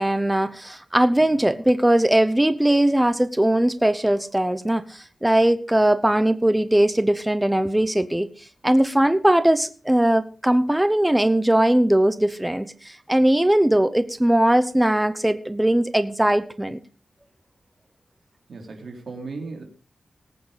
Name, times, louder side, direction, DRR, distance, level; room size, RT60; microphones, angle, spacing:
voice 1, 0.0-16.8, right 1 dB, 10° right, 12 dB, 0.8 m, -20 dB
voice 2, 18.5-19.6, right 3 dB, 65° right, 2 dB, 3.2 m, -36 dB
18.0 x 8.8 x 5.1 m, 0.38 s
wide cardioid pair, 90°, 0 cm